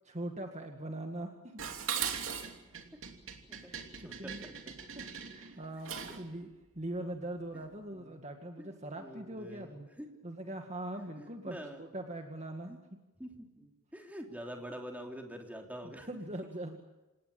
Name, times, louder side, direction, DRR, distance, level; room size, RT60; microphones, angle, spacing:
voice 1, 0.0-1.6 3.6-4.4 5.0-6.5 6.8-9.9 10.2-12.7 15.8-16.8, right 1 dB, 30° right, 4 dB, 2.1 m, -42 dB
Dishes pots and pans, 1.6-6.3, right 7 dB, 60° right, 3.0 m, -39 dB
voice 2, 4.0-4.7 7.9-8.2 8.6-8.7 9.0-10.1 11.2-11.8 12.7-12.8 13.2-16.1, equal, 5° right, 2 dB, 3.4 m, -46 dB
27.5 x 18.5 x 8.8 m, 1.1 s
head